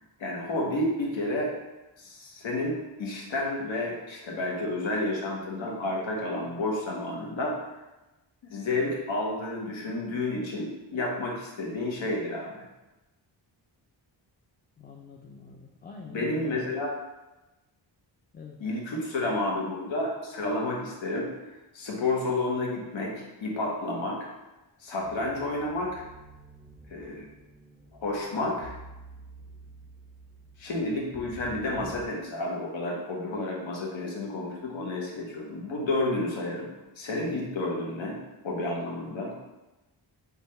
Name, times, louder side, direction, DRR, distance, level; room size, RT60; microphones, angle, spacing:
voice 1, 0.2-1.5 2.0-7.6 8.4-12.7 16.1-16.9 18.6-21.3 21.7-23.1 23.4-24.2 24.8-26.0 26.9-27.3 28.0-28.7 30.6-36.7 37.0-38.2 38.4-39.3, left 2 dB, 70° left, -2 dB, 0.9 m, -30 dB
voice 2, 14.8-16.5 18.3-18.6, left 4 dB, 20° left, 0 dB, 0.4 m, -45 dB
sound 1, 25.0-32.1, right 2 dB, ahead, 1.0 m, -49 dB
3.4 x 2.3 x 4.1 m, 1.0 s
cardioid pair, 55°, 48 cm